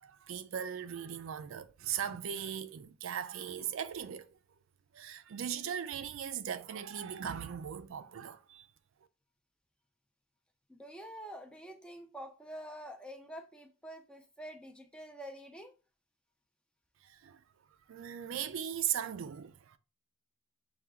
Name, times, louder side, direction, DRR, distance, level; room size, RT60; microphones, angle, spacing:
voice 1, 0.0-4.3 4.9-8.7 17.1-17.4 17.9-19.8, right 9 dB, 70° right, 0.4 m, -38 dB
voice 2, 10.7-15.7, equal, 5° left, 0.4 m, -47 dB
5.6 x 2.3 x 3.5 m
head